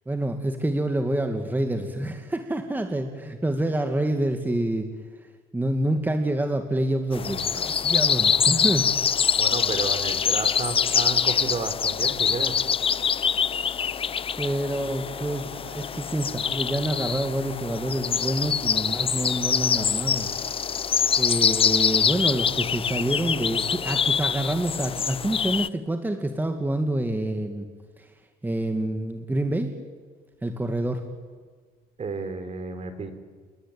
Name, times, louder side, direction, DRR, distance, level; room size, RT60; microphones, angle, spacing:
voice 1, 0.1-4.9 5.5-8.9 14.4-20.3 21.2-27.7 28.0-28.1 28.4-29.7 30.4-31.0, right 1 dB, 10° right, 5 dB, 2.3 m, -27 dB
sound 1, 7.1-25.7, left 7 dB, 35° left, 0.7 m, -25 dB
voice 2, 9.4-12.6 32.0-33.1, right 4 dB, 40° right, 9 dB, 4.4 m, -32 dB
29.0 x 22.5 x 9.0 m, 1.5 s
cardioid pair, 110°, 17 cm